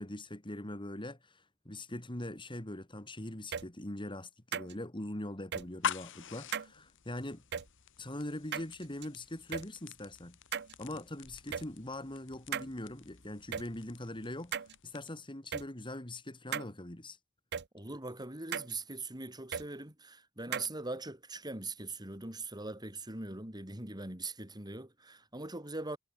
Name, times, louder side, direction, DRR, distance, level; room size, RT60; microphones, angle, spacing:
voice 1, 0.0-7.4 8.0-10.4 10.8-14.5 14.8-17.2, left 1 dB, 20° left, 2.6 m, -42 dB
sound 1, 3.5-3.6 4.5-4.7 5.5-5.6 6.5-6.7 7.5-7.6 8.5-9.1 9.5-9.6 10.5-10.7 11.5-11.6 12.5-12.7 13.5-13.6 14.5-14.7 15.5-15.6 16.5-16.7 17.5-17.6 18.5-18.7 19.5-19.7 20.5-20.7, right 8 dB, 50° right, 0.7 m, -36 dB
sound 2, 5.6-15.3, left 7 dB, 60° left, 1.9 m, -45 dB
voice 2, 17.7-26.0, right 2 dB, 20° right, 4.5 m, -41 dB
head